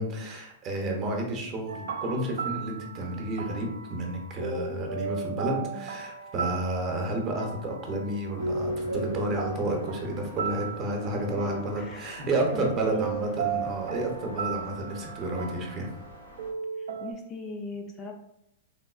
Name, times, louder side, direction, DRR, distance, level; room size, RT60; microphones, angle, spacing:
voice 1, 0.0-15.9, right 1 dB, 35° right, 1 dB, 0.7 m, -31 dB
sound 1, 1.7-17.1, right 5 dB, 80° right, 0.4 m, -36 dB
voice 2, 5.5-5.9 11.8-13.5 16.8-18.1, left 2 dB, 30° left, 2 dB, 0.4 m, -40 dB
sound 2, 8.4-16.5, left 2 dB, 85° left, 0.6 m, -49 dB
3.4 x 2.3 x 2.3 m, 0.81 s
hypercardioid pair, 135°, 0 cm